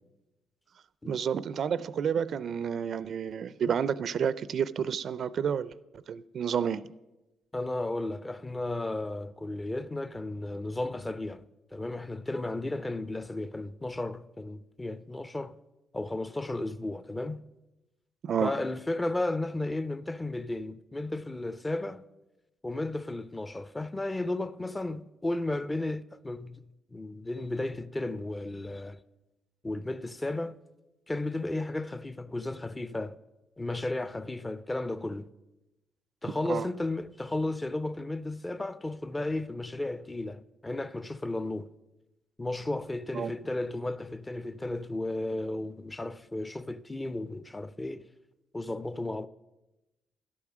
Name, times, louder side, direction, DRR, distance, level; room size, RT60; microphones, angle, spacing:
voice 1, 1.1-5.7 6.1-6.8 18.2-18.5 36.5-36.7 43.1-43.3, right 7 dB, 60° right, 0.4 m, -30 dB
voice 2, 7.5-11.4 11.7-15.6 15.9-17.4 18.4-22.1 22.6-26.6 26.9-29.0 29.6-30.6 31.1-33.2 33.6-35.3 36.2-41.7 42.4-48.1 48.5-49.3, left 2 dB, 15° left, 0.5 m, -34 dB
11.5 x 8.6 x 6.1 m
cardioid pair, 90°, 0 cm